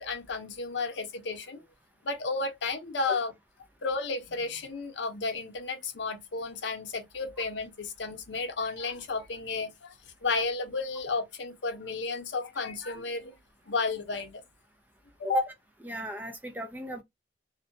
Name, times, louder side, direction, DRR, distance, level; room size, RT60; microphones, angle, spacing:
voice 1, 0.0-1.6 2.0-3.3 3.8-9.9 10.2-13.3 13.7-14.4 15.2-15.4, left 4 dB, 85° left, 0.7 m, -32 dB
voice 2, 15.8-17.0, left 1 dB, 10° right, 0.4 m, -32 dB
2.6 x 2.2 x 2.6 m
head